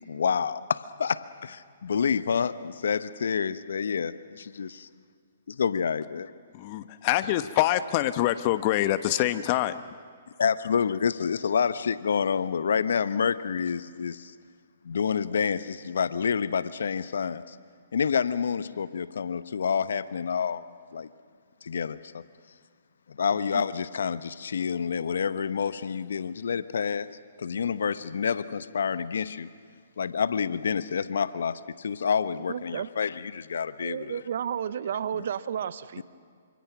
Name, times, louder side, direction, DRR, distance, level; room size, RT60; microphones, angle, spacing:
voice 1, 0.1-4.9 5.5-6.3 10.4-14.3 14.8-17.6 17.9-20.6 20.9-21.1 21.6-22.2 23.1-27.1 27.4-29.5 30.0-34.2 36.0-36.1, left 6 dB, 70° left, 14 dB, 1.0 m, -28 dB
voice 2, 6.5-9.7, left 14 dB, 40° left, 12 dB, 1.2 m, -25 dB
voice 3, 32.5-32.9 33.8-36.0, right 8 dB, 60° right, 15 dB, 1.0 m, -32 dB
29.5 x 26.5 x 6.1 m, 2.1 s
hypercardioid pair, 130°, 0 cm